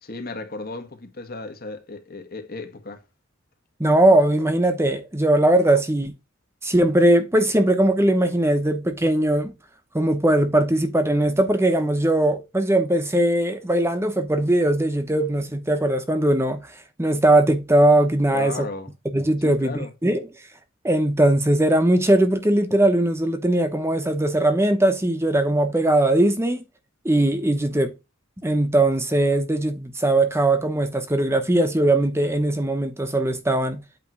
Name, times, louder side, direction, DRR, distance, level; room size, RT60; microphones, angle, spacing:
voice 1, 0.0-3.0 18.3-18.9 19.4-19.9, left 3 dB, 50° left, 1.5 m, -35 dB
voice 2, 3.8-6.1 6.6-9.5 9.9-16.7 17.0-18.7 19.0-20.2 20.8-26.6 27.0-27.9 28.4-33.8, right 1 dB, 15° right, 0.9 m, -20 dB
8.6 x 3.2 x 6.1 m
head